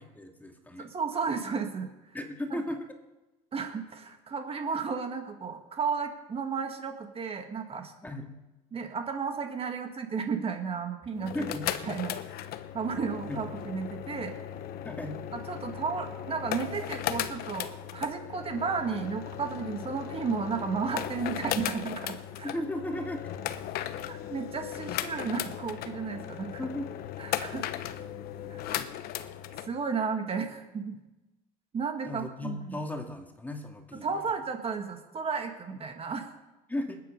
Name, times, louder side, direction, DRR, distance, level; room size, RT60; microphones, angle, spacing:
voice 1, 0.0-0.9 2.1-3.0 8.0-8.3 11.2-11.6 13.3-13.4 14.8-15.2 22.4-23.3 26.6-26.9 32.1-34.2 35.7-35.8 36.7-37.0, left 1 dB, 10° left, 3 dB, 2.4 m, -36 dB
voice 2, 0.8-1.9 3.5-7.9 8.7-11.5 11.8-12.2 12.7-14.4 15.3-22.5 24.1-26.6 27.2-27.6 28.5-28.8 29.7-31.0 31.7-32.8 34.0-36.3, right 5 dB, 30° right, 5 dB, 1.8 m, -33 dB
sound 1, 11.2-29.7, left 11 dB, 60° left, 1.0 m, -37 dB
20.0 x 8.6 x 5.3 m, 1.0 s
supercardioid pair, 90°, 18 cm